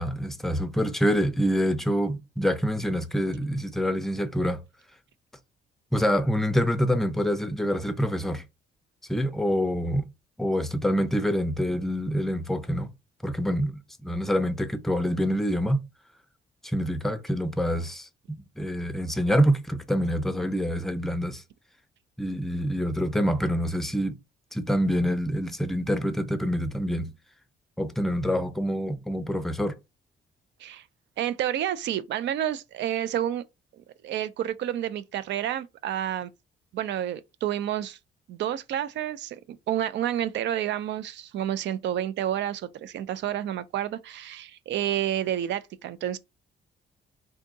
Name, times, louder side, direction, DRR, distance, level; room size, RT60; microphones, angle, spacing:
voice 1, 0.0-4.6 5.9-8.4 9.1-10.1 10.4-12.9 13.2-15.8 16.6-18.1 18.6-21.4 22.2-24.2 24.5-27.1 27.8-29.8, equal, ahead, 0.4 m, -26 dB
voice 2, 31.2-33.4 34.0-36.3 36.7-38.0 38.3-46.2, right 11 dB, 70° right, 0.5 m, -29 dB
3.5 x 2.7 x 3.9 m
cardioid pair, 130°, 19 cm